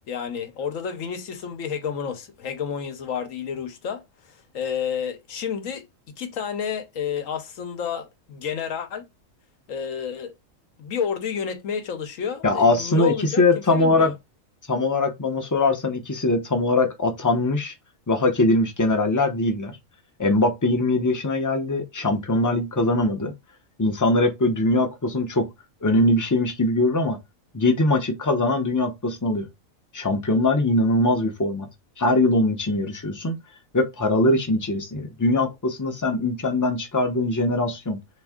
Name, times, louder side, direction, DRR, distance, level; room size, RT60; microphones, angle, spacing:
voice 1, 0.1-5.9 6.2-9.0 9.7-10.3 10.8-13.4 13.7-14.1, left 7 dB, 75° left, 1.2 m, -30 dB
voice 2, 12.4-14.1 14.7-17.7 18.1-19.7 20.2-23.3 23.8-25.5 25.8-27.2 27.5-29.5 29.9-31.7 32.0-33.4 33.7-38.0, left 2 dB, 20° left, 0.5 m, -22 dB
3.5 x 3.0 x 3.6 m
omnidirectional pair, 1.4 m